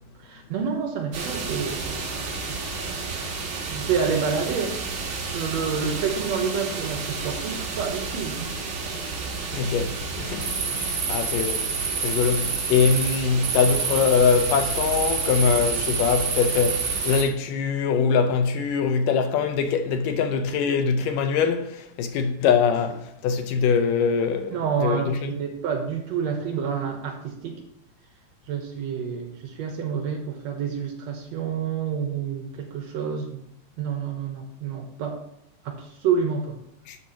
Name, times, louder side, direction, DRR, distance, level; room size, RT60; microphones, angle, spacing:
voice 1, 0.2-2.0 2.5-2.6 3.7-4.8 5.3-8.5 24.5-27.5 28.5-33.4 33.8-35.2 35.7-36.6, right 6 dB, 65° right, 1.9 m, -28 dB
sound 1, 1.1-17.2, right 4 dB, 50° right, 1.4 m, -29 dB
voice 2, 9.5-11.8 12.0-25.3 36.9-37.0, left 6 dB, 85° left, 2.5 m, -23 dB
12.0 x 7.7 x 2.9 m
omnidirectional pair, 3.7 m